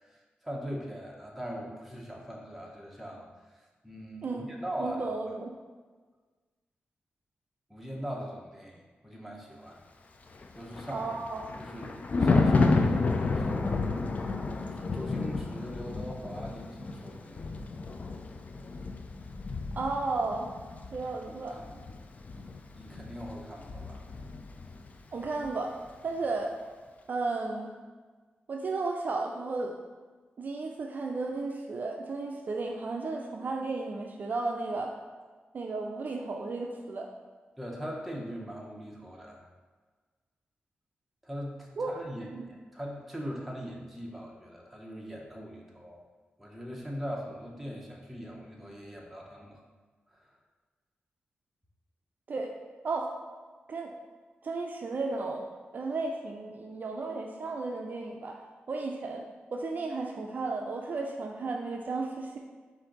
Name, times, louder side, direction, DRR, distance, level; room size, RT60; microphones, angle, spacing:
voice 1, 0.1-3.3 3.8-5.1 7.7-9.8 10.5-11.0 11.6-13.8 14.6-17.5 21.3-21.8 22.8-24.0 37.6-39.5 41.2-46.0 46.4-49.6 50.1-50.3, equal, ahead, -2 dB, 0.8 m, -41 dB
voice 2, 4.8-5.6 10.9-11.4 19.8-20.5 20.9-21.6 25.1-25.8 26.0-26.5 27.1-27.7 28.5-29.8 30.4-34.9 35.5-37.1 41.8-41.9 42.3-42.5 52.3-52.5 52.8-53.1 53.7-53.9 54.4-58.4 58.7-59.3 59.5-62.4, right 3 dB, 50° right, 1 dB, 0.4 m, -34 dB
Thunder, 10.4-24.9 25.2-25.5, left 3 dB, 40° left, 0.3 m, -31 dB
4.4 x 2.6 x 3.8 m, 1.4 s
cardioid pair, 85°, 4 cm